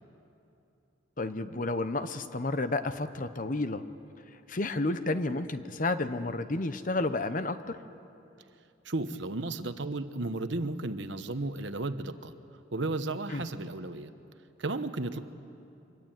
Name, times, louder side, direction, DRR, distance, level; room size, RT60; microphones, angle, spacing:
voice 1, 1.2-3.8 4.5-7.8 13.3-13.4, left 2 dB, 40° left, 11 dB, 0.9 m, -31 dB
voice 2, 8.8-12.3 12.7-14.1 14.6-15.2, right 2 dB, 65° right, 10 dB, 1.1 m, -34 dB
25.0 x 22.5 x 9.1 m, 2.8 s
head